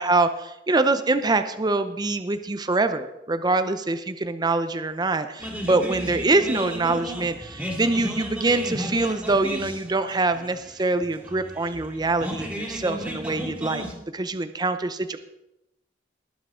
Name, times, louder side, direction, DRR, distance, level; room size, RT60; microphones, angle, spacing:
voice 1, 0.0-13.8 14.1-15.2, right 3 dB, 25° right, 10 dB, 0.6 m, -24 dB
sound 1, 5.4-13.9, equal, 5° right, 2.3 m, -34 dB
20.5 x 7.2 x 3.7 m, 0.90 s
head